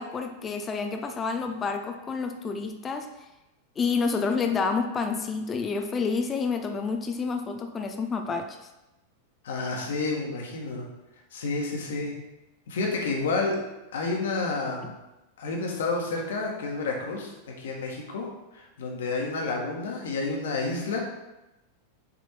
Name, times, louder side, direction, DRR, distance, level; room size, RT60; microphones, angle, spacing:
voice 1, 0.0-3.1 3.8-8.6, left 4 dB, 25° left, 6 dB, 0.6 m, -29 dB
voice 2, 9.4-10.9 11.3-12.1 12.7-13.6 13.9-14.9 15.4-18.3 18.5-21.0, left 3 dB, 65° left, 0 dB, 1.6 m, -30 dB
6.9 x 4.3 x 4.6 m, 0.98 s
figure-of-eight pair, 90°, 0 cm